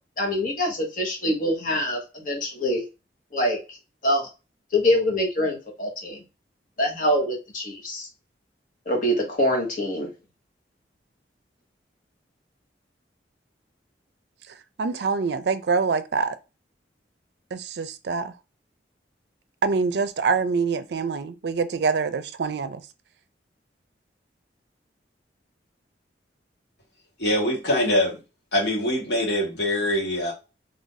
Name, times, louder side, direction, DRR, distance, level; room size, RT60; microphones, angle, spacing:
voice 1, 0.2-2.8 3.3-3.8 4.0-4.3 4.7-6.2 6.8-8.1 8.9-10.1, equal, 45° left, 1.3 m, -24 dB
voice 2, 14.8-16.3 17.5-18.3 19.6-22.8, right 5 dB, 70° right, 0.4 m, -25 dB
voice 3, 27.2-28.2 28.5-30.3, left 1 dB, 75° left, 1.7 m, -23 dB
3.3 x 2.6 x 3.8 m
head